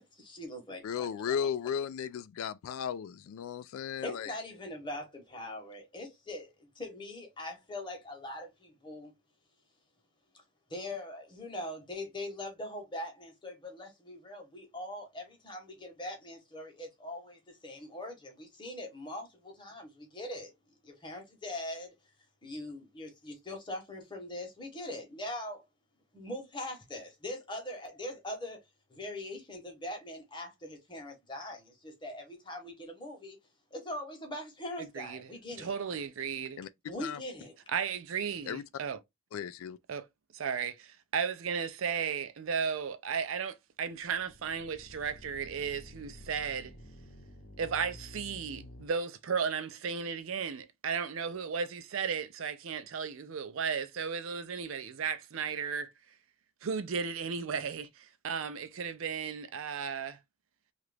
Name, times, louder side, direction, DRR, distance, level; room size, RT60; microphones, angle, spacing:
voice 1, 0.0-1.4 4.0-9.1 10.3-10.4 10.7-20.5 20.8-21.9 22.4-25.6 26.1-28.6 28.9-33.4 33.7-35.7 36.9-37.6, left 1 dB, 20° left, 0.9 m, -42 dB
voice 2, 0.8-4.3 36.6-36.7 37.0-37.2 38.5-38.6 39.3-39.8, left 8 dB, 85° left, 0.3 m, -35 dB
voice 3, 34.8-35.3 35.6-36.6 37.7-39.0 39.9-40.0 40.3-46.7 47.6-55.9 56.6-60.2, right 6 dB, 70° right, 0.5 m, -35 dB
sound 1, 43.9-48.9, left 1 dB, 60° left, 0.8 m, -50 dB
2.8 x 2.5 x 3.2 m
head